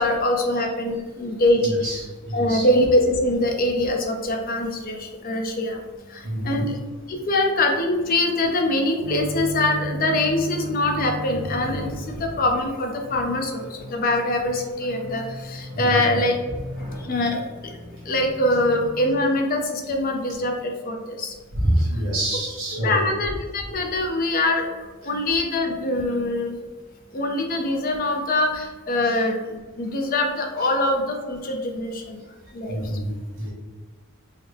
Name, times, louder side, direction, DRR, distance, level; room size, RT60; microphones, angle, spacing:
voice 1, 0.0-1.9 2.3-5.8 6.1-6.8 7.3-16.3 17.0-17.4 18.1-21.3 22.8-24.7 25.0-26.6 27.1-29.4 29.8-32.2 32.5-32.8, left 1 dB, 40° left, 2 dB, 0.5 m, -23 dB
voice 2, 1.6-2.7 6.2-6.7 15.7-16.2 21.5-23.1 29.0-29.2 32.7-33.5, right 1 dB, 85° right, -5 dB, 1.5 m, -26 dB
sound 1, 9.0-19.2, equal, 30° right, 1.4 m, -36 dB
3.9 x 2.0 x 3.4 m, 1.3 s
head